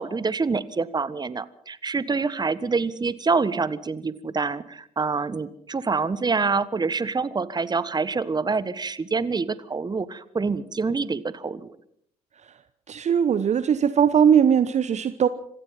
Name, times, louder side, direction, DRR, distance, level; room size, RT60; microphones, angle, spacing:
voice 1, 0.0-11.7, right 4 dB, 20° right, 17 dB, 1.4 m, -26 dB
voice 2, 12.9-15.3, right 8 dB, 35° right, 14 dB, 1.0 m, -20 dB
26.0 x 17.5 x 5.8 m, 0.71 s
figure-of-eight pair, 50°, 19 cm